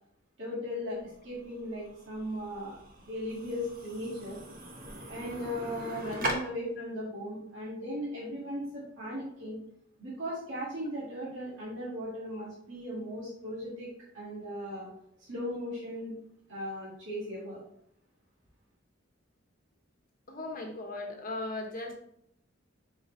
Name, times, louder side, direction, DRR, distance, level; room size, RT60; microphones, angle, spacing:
voice 1, 0.4-1.0 1.2-4.4 5.1-9.6 10.0-13.9 14.1-14.9 15.3-16.1 16.5-17.6, equal, 75° right, -8 dB, 2.1 m, -37 dB
sound 1, 0.9-6.3, right 1 dB, 45° right, 1.2 m, -40 dB
voice 2, 20.3-22.0, left 2 dB, 45° left, 3 dB, 1.2 m, -37 dB
7.1 x 4.9 x 3.2 m, 0.73 s
head